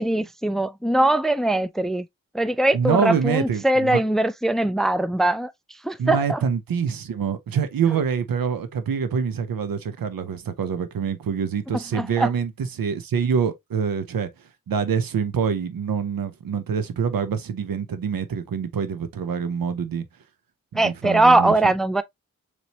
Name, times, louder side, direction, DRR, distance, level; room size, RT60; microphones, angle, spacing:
voice 1, 0.0-2.1 2.3-6.4 11.7-12.3 20.7-22.0, right 2 dB, ahead, 0.4 m, -21 dB
voice 2, 2.7-4.0 6.0-12.5 12.8-14.3 14.7-20.0 20.7-21.7, right 6 dB, 85° right, 0.7 m, -25 dB
4.1 x 3.1 x 2.9 m
cardioid pair, 40°, 34 cm